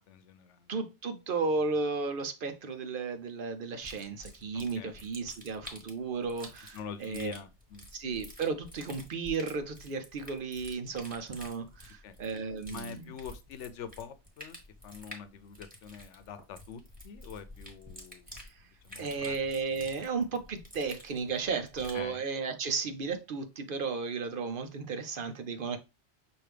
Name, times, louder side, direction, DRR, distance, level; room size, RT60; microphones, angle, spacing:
voice 1, 0.0-0.7 4.5-5.0 6.7-7.9 12.0-12.2 12.7-14.6 14.8-18.3 18.8-19.4 21.9-22.2, left 7 dB, 90° left, 1.0 m, -45 dB
voice 2, 0.7-7.3 7.9-13.1 18.3-18.6 19.0-25.8, right 4 dB, 55° right, 0.7 m, -34 dB
sound 1, 3.8-22.1, left 1 dB, 5° right, 1.5 m, -50 dB
6.0 x 2.7 x 3.3 m
omnidirectional pair, 1.2 m